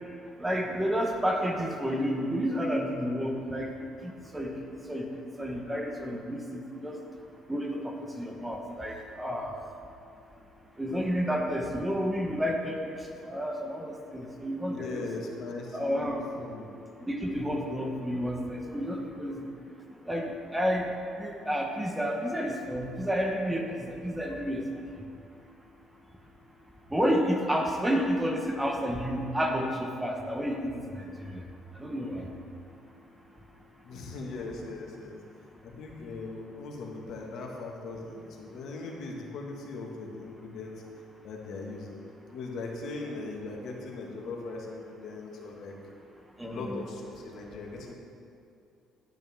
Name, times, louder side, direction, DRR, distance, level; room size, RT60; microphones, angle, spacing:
voice 1, 0.4-3.7 4.0-4.5 4.9-5.0 5.4-7.0 7.5-9.5 10.8-13.0 13.2-15.1 15.7-16.2 17.0-19.5 20.0-20.9 21.2-24.6 26.9-31.4 31.8-32.3 46.4-46.8, equal, 10° right, 2 dB, 1.2 m, -30 dB
voice 2, 14.7-16.7 33.8-35.2 35.6-40.8 41.2-42.0 42.3-45.8 46.4-47.9, left 3 dB, 65° left, 0 dB, 1.7 m, -39 dB
11.0 x 10.0 x 3.6 m, 2.6 s
cardioid pair, 100°, 0 cm